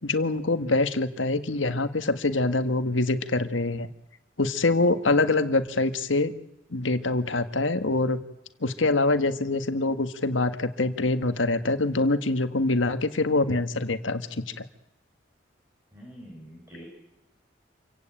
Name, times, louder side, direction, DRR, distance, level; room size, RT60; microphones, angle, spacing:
voice 1, 0.0-3.9 4.4-6.3 6.7-8.2 8.6-14.6, left 2 dB, 85° left, 9 dB, 1.6 m, -25 dB
voice 2, 15.9-16.9, equal, 15° right, -1 dB, 5.2 m, -45 dB
27.5 x 16.5 x 9.0 m, 0.87 s
head